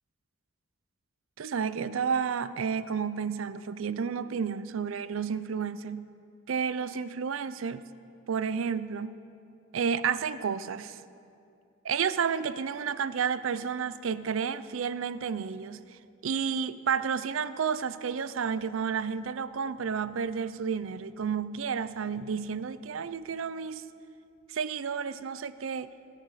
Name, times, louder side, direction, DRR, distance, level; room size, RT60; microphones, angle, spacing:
voice 1, 1.4-6.1 6.5-7.8 8.3-9.1 9.7-11.0 11.8-15.8 16.2-23.8 24.5-25.9, right 6 dB, 90° right, 15 dB, 0.5 m, -31 dB
17.0 x 10.5 x 4.8 m, 2.5 s
head